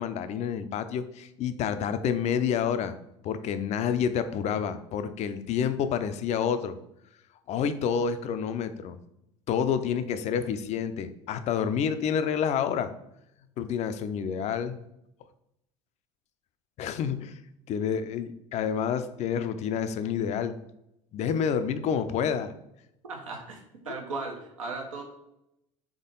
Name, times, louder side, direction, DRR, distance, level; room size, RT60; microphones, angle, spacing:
voice 1, 0.0-2.9 3.2-6.8 7.5-9.0 9.5-12.9 13.6-14.8 16.8-17.4 17.7-20.6 21.1-22.5, left 7 dB, 45° left, 11 dB, 0.4 m, -28 dB
voice 2, 23.1-25.0, right 3 dB, 80° right, 1 dB, 0.8 m, -37 dB
3.6 x 3.6 x 3.8 m, 0.83 s
figure-of-eight pair, 60°, 17 cm